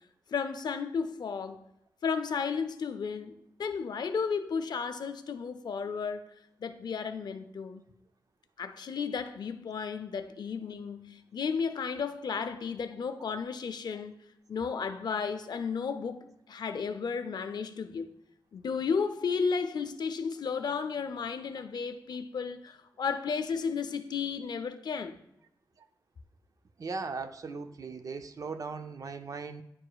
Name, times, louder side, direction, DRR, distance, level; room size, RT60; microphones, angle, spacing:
voice 1, 0.3-1.6 2.0-3.3 3.6-6.2 6.6-7.8 8.6-14.1 14.5-18.1 18.5-25.2, left 5 dB, 65° left, 0.5 m, -33 dB
voice 2, 26.8-29.6, right 4 dB, 50° right, 0.4 m, -38 dB
10.0 x 4.8 x 2.3 m
wide cardioid pair, 100°, 8 cm